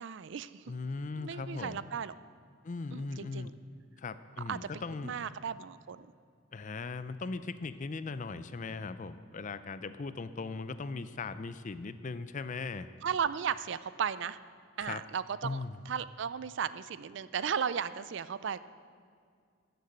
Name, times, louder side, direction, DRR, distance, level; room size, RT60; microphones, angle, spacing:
voice 1, 0.0-0.6 1.2-2.1 2.9-3.5 4.5-4.7 5.0-6.1 13.0-14.4 14.8-18.6, right 7 dB, 55° right, 16 dB, 0.4 m, -35 dB
voice 2, 0.7-1.8 2.6-3.5 4.0-5.2 6.5-12.9 14.8-15.0 15.4-15.8, left 3 dB, 35° left, 13 dB, 0.4 m, -39 dB
14.0 x 6.7 x 7.9 m, 2.1 s
head